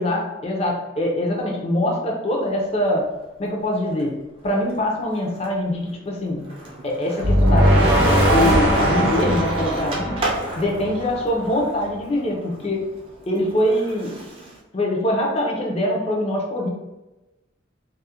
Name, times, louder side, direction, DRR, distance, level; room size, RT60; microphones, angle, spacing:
voice 1, 0.0-3.0 3.4-4.1 4.4-6.4 6.8-10.2 10.6-12.9 13.3-14.1 14.7-16.7, left 1 dB, 30° left, -1 dB, 0.4 m, -23 dB
Skateboard, 2.4-4.0 4.4-14.6, right 1 dB, 30° right, 0.4 m, -34 dB
sound 1, 7.2-11.3, equal, 70° right, 0.6 m, -19 dB
2.3 x 2.0 x 2.8 m, 1.0 s
head